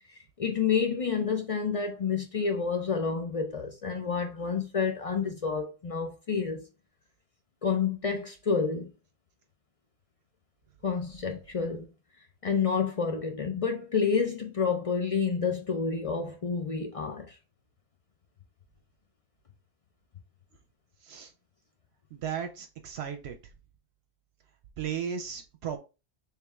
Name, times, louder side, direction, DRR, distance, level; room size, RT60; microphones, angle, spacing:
voice 1, 0.4-6.6 7.6-8.9 10.8-11.9 12.4-17.3, left 5 dB, 45° left, 0.4 m, -29 dB
voice 2, 22.1-23.4 24.8-25.8, right 8 dB, 80° right, 0.8 m, -35 dB
3.5 x 3.2 x 3.0 m
omnidirectional pair, 1.1 m